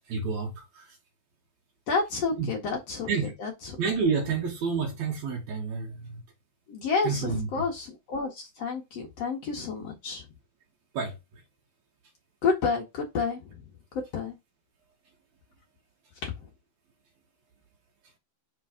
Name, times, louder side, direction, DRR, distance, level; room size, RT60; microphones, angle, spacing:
voice 1, 0.1-0.9 2.4-2.5 3.1-3.3 3.8-6.2 7.0-7.5 10.9-11.2, right 5 dB, 65° right, 2.0 m, -29 dB
voice 2, 1.9-3.8 6.7-10.2 12.4-13.4 14.1-14.3, left 4 dB, 60° left, 1.8 m, -30 dB
5.8 x 3.9 x 4.9 m
omnidirectional pair, 4.6 m